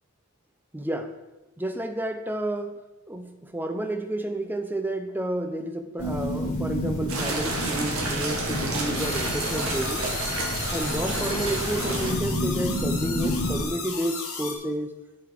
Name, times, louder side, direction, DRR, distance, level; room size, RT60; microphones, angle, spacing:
voice 1, 0.7-1.1 1.6-2.8 3.1-10.1 10.7-14.9, right 1 dB, 10° right, 6 dB, 0.6 m, -31 dB
sound 1, 6.0-13.6, equal, 65° left, 3.4 m, -30 dB
sound 2, 7.1-12.1, right 2 dB, 70° right, 1.9 m, -30 dB
sound 3, 8.9-14.5, left 5 dB, 80° left, 2.0 m, -35 dB
7.8 x 7.8 x 4.7 m, 1.0 s
head